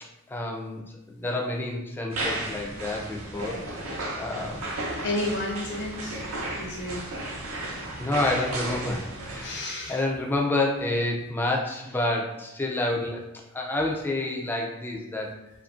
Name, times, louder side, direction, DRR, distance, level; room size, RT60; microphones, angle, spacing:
voice 1, 0.3-0.8 1.1-4.7 8.0-13.2 13.5-15.3, left 2 dB, 10° left, -1 dB, 0.3 m, -29 dB
sound 1, 2.1-9.5, right 1 dB, 90° right, 0.6 m, -34 dB
voice 2, 5.0-6.2 6.6-7.1 9.3-10.0, left 1 dB, 55° left, -1 dB, 0.6 m, -32 dB
2.6 x 2.4 x 2.4 m, 0.93 s
head